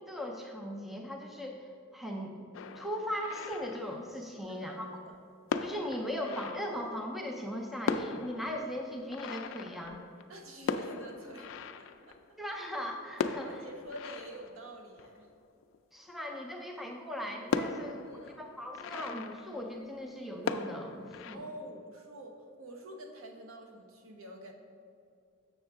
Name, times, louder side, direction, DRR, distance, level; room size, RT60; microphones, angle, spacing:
voice 1, 0.1-2.4 2.7-4.9 5.6-10.0 12.4-13.6 15.9-21.4, equal, ahead, 1 dB, 0.5 m, -38 dB
sound 1, 2.5-4.4 5.1-5.2 5.5-7.2 7.5-7.6 7.8-12.6 13.1-15.8 16.3-16.4 16.8-16.9 17.5-20.1 20.4-21.4, left 5 dB, 75° left, 0.3 m, -38 dB
voice 2, 4.5-5.2 10.3-11.5 11.8-12.4 13.4-15.3 18.0-18.4 21.3-24.5, right 1 dB, 85° right, 2 dB, 0.9 m, -47 dB
7.0 x 6.3 x 3.5 m, 2.4 s
head